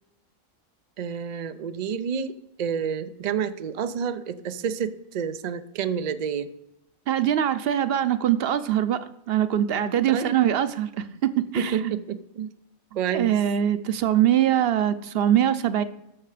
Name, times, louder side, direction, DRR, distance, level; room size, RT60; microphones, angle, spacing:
voice 1, 1.0-2.3 2.6-6.5 10.1-10.4 11.5-12.5 13.0-13.3, right 7 dB, 85° right, 11 dB, 0.3 m, -29 dB
voice 2, 7.1-11.9 13.1-15.8, right 10 dB, 55° right, 14 dB, 0.7 m, -23 dB
11.5 x 6.8 x 4.9 m, 0.86 s
omnidirectional pair, 1.4 m